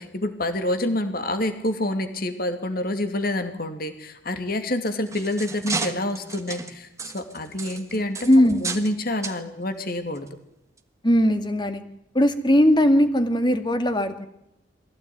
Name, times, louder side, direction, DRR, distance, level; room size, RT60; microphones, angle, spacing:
voice 1, 0.0-6.9 7.1-8.3 8.6-10.3, left 1 dB, 50° left, 8 dB, 2.7 m, -27 dB
sound 1, 4.7-8.9 9.2-9.4 10.1-10.3 10.8-10.9, right 4 dB, 15° right, 1.7 m, -33 dB
voice 2, 8.3-8.6 11.0-11.8 12.1-14.3, equal, 25° left, 8 dB, 2.2 m, -19 dB
23.0 x 16.0 x 9.5 m, 0.81 s
head